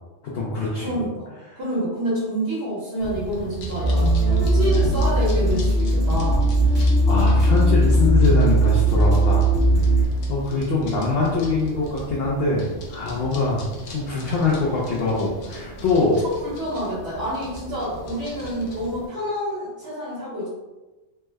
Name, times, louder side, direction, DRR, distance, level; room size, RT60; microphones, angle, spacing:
voice 1, 0.2-0.9 1.5-1.6 7.1-9.4 10.0-16.1, left 3 dB, 60° left, -5 dB, 0.8 m, -23 dB
voice 2, 0.8-6.4 15.9-20.5, equal, 60° right, -8 dB, 1.2 m, -28 dB
sound 1, 3.0-19.1, right 1 dB, 85° left, 1.0 m, -37 dB
sound 2, 3.8-10.0, right 1 dB, 15° right, 0.9 m, -18 dB
3.3 x 2.0 x 3.3 m, 1.1 s
omnidirectional pair, 1.2 m